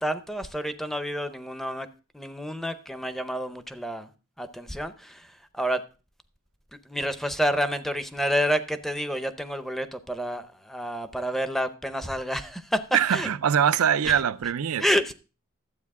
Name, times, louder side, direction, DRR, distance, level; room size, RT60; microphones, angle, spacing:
voice 1, 0.0-1.9 2.1-4.1 4.4-5.8 6.9-12.8 13.1-13.3 14.0-14.1 14.8-15.1, equal, ahead, 0.6 m, -29 dB
voice 2, 12.9-14.8, right 8 dB, 75° right, 0.5 m, -23 dB
12.0 x 8.1 x 3.6 m
head